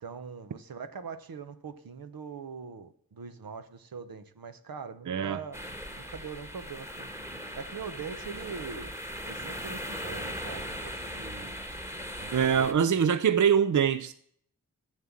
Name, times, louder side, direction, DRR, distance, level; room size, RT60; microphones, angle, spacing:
voice 1, 0.0-5.6 5.9-7.1 7.5-8.9 9.2-11.6 12.2-12.7, right 5 dB, 80° right, 0.9 m, -42 dB
voice 2, 5.1-5.4 12.3-14.1, right 7 dB, 60° right, 0.6 m, -24 dB
sound 1, 5.5-12.7, equal, 5° right, 1.5 m, -39 dB
7.5 x 7.4 x 7.2 m
cardioid pair, 40°, 35 cm